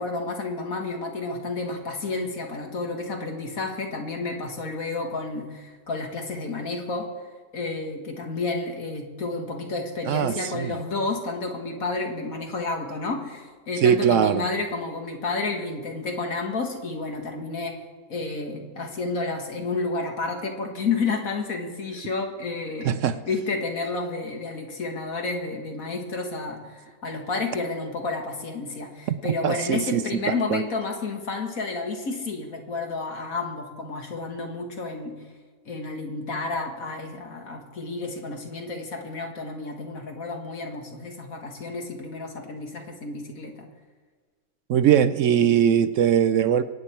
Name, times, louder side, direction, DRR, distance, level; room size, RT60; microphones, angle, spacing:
voice 1, 0.0-7.1 7.5-17.8 18.1-23.0 23.3-35.1 35.7-43.6, left 3 dB, 70° left, 2 dB, 2.2 m, -31 dB
voice 2, 10.1-10.7 13.8-14.5 22.8-23.2 29.1-29.2 29.4-30.6 44.7-46.6, right 9 dB, 70° right, 13 dB, 0.9 m, -21 dB
23.5 x 9.0 x 4.4 m, 1.5 s
omnidirectional pair, 1.5 m